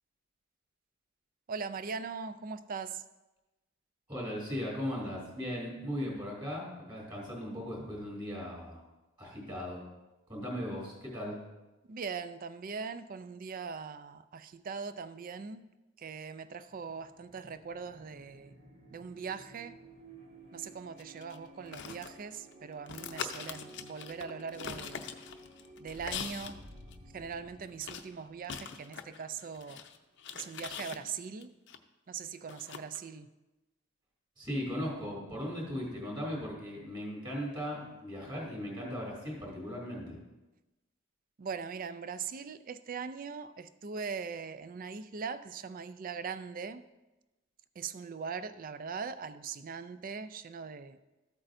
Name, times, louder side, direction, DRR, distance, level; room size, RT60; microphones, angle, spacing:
voice 1, 1.5-3.0 11.9-15.7 16.0-18.6 18.9-19.8 20.5-25.0 25.8-26.6 27.1-29.8 30.3-31.5 32.1-33.3 41.4-46.9 47.8-51.0, right 5 dB, 45° right, 13 dB, 0.4 m, -41 dB
voice 2, 4.1-8.8 9.2-9.8 10.3-11.4 34.4-40.2, equal, 25° right, -3 dB, 3.7 m, -38 dB
sound 1, 16.7-30.1, right 1 dB, 85° right, 2.3 m, -54 dB
sound 2, 21.0-22.5 22.9-26.6 26.9-27.0 27.8-31.8 32.5-33.0, left 7 dB, 60° left, 0.6 m, -42 dB
14.0 x 8.3 x 2.6 m, 1.1 s
head